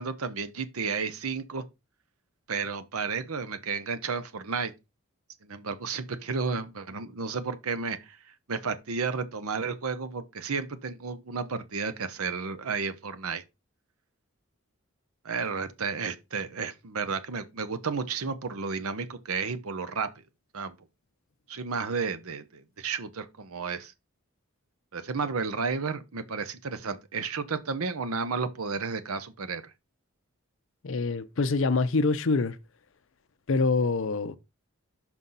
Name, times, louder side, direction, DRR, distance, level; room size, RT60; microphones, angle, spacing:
voice 1, 0.0-1.6 2.5-4.7 5.4-13.4 15.2-20.1 20.5-20.7 21.5-23.9 24.9-29.6, right 5 dB, 80° right, 0.8 m, -32 dB
voice 2, 30.8-32.6 33.5-34.4, left 3 dB, 60° left, 0.6 m, -25 dB
6.2 x 5.6 x 4.0 m
head